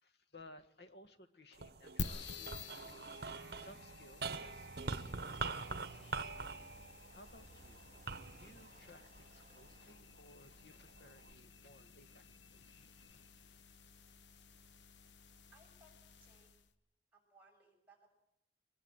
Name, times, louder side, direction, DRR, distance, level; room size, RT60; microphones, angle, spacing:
voice 1, 0.0-3.3 3.5-6.5 7.1-12.3 12.5-13.2, left 1 dB, 65° left, 10 dB, 1.7 m, -61 dB
sound 1, 1.5-10.0 10.6-11.3, right 4 dB, 60° right, 1.0 m, -45 dB
sound 2, 2.0-16.7, left 4 dB, 85° left, 1.0 m, -51 dB
sound 3, 4.2-10.0, right 3 dB, 40° right, 3.5 m, -68 dB
voice 2, 15.5-16.5 17.1-18.1, right 1 dB, 10° right, -2 dB, 6.7 m, -66 dB
23.0 x 20.5 x 8.0 m, 0.81 s
head